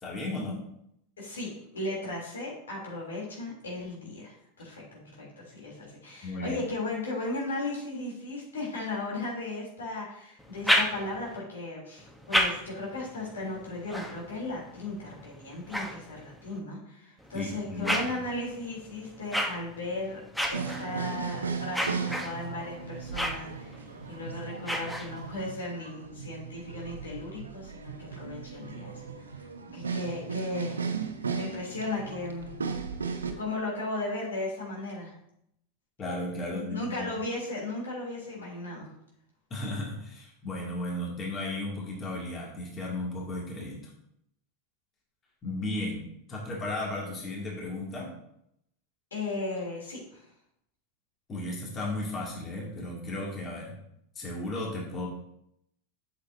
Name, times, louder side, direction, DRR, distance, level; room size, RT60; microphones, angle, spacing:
voice 1, 0.0-0.6 6.2-6.6 17.3-18.0 36.0-37.1 39.5-43.8 45.4-48.1 51.3-53.8 54.2-55.1, left 1 dB, 30° left, -3 dB, 2.4 m, -35 dB
voice 2, 1.2-20.2 20.5-23.7 24.1-29.2 29.7-30.8 31.3-32.5 33.4-35.1 36.5-38.9 49.1-50.2, left 2 dB, 85° left, -4 dB, 3.1 m, -36 dB
sound 1, 10.4-11.4 12.0-16.6 17.2-25.5, equal, ahead, 1.0 m, -34 dB
sound 2, 20.5-33.3, right 5 dB, 90° right, 0.7 m, -36 dB
8.1 x 6.6 x 2.7 m, 0.75 s
hypercardioid pair, 95°, 0 cm